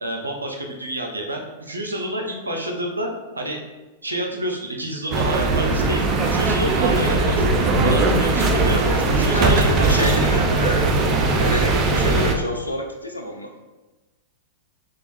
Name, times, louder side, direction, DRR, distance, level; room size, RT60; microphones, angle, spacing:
voice 1, 0.0-3.1 3.4-3.6 4.0-7.4 7.8-8.8 9.1-10.1, right 1 dB, 80° right, 1 dB, 0.6 m, -28 dB
sound 1, 5.1-12.3, right 3 dB, 35° right, 0.5 m, -19 dB
voice 2, 9.3-10.9 11.4-13.5, left 2 dB, 85° left, 3 dB, 0.5 m, -28 dB
6.2 x 2.4 x 2.6 m, 1.2 s
figure-of-eight pair, 95°, 0 cm